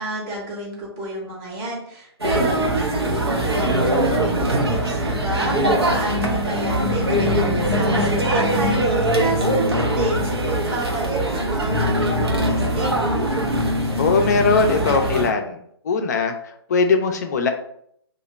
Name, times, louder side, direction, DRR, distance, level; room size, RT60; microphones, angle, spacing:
voice 1, 0.0-12.9, right 2 dB, 20° right, -2 dB, 0.8 m, -29 dB
sound 1, 2.2-15.3, equal, 70° right, 0.8 m, -21 dB
voice 2, 14.0-15.6 15.8-16.3 16.7-17.5, left 4 dB, 40° left, 6 dB, 0.5 m, -19 dB
2.8 x 2.5 x 4.2 m, 0.68 s
figure-of-eight pair, 130°, 14 cm